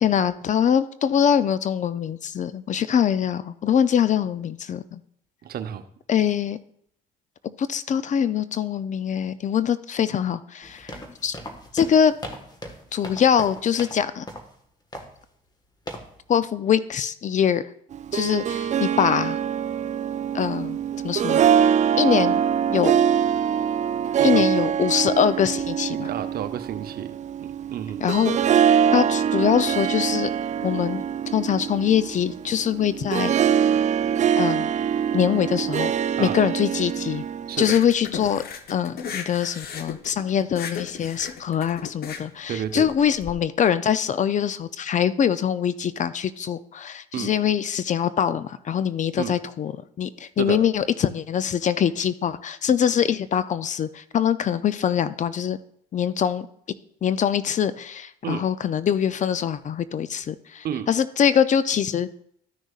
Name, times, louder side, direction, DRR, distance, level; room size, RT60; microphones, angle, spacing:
voice 1, 0.0-5.0 6.1-6.6 7.4-11.4 11.7-12.1 12.9-14.3 16.3-17.7 18.1-19.4 20.3-20.8 21.0-21.4 22.0-22.4 22.7-22.9 24.2-26.1 28.0-28.4 28.9-30.3 30.6-31.0 31.3-33.3 34.4-34.7 35.1-35.9 36.2-37.2 37.6-38.4 38.7-49.7 50.0-55.6 55.9-56.5 57.0-62.1, left 8 dB, 45° left, 15 dB, 0.5 m, -23 dB
voice 2, 5.4-5.8 24.2-24.4 25.9-27.2 27.7-28.0 36.2-36.4 37.5-37.8 42.5-42.9 47.1-47.3 49.2-49.3 50.4-50.6 58.2-58.4 60.6-60.9, right 9 dB, 60° right, 10 dB, 0.8 m, -30 dB
sound 1, 10.6-14.0 14.3-14.5 14.9-15.2 15.9-16.1, left 1 dB, 25° left, 1.5 m, -38 dB
Harp, 17.9-37.7, right 8 dB, 40° right, 0.4 m, -23 dB
sound 2, 37.6-43.3, left 6 dB, 60° left, 0.9 m, -36 dB
13.0 x 6.3 x 2.4 m, 0.69 s
supercardioid pair, 70°, 18 cm